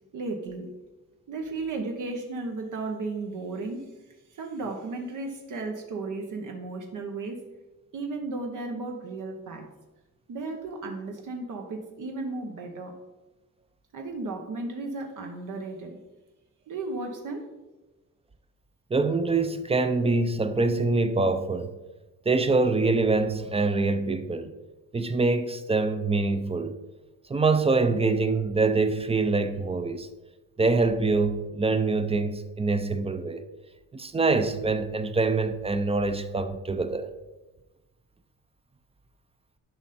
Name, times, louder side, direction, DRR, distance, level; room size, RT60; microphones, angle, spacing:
voice 1, 0.1-0.7 1.3-7.4 7.9-9.7 10.3-12.9 13.9-16.0 16.7-17.5, right 3 dB, 65° right, 1.2 m, -34 dB
voice 2, 18.9-21.7 22.3-24.5 24.9-26.8 27.3-30.1 30.6-33.4 33.9-37.1, right 3 dB, 15° right, 0.5 m, -25 dB
11.5 x 5.2 x 4.3 m
cardioid pair, 145°, 33 cm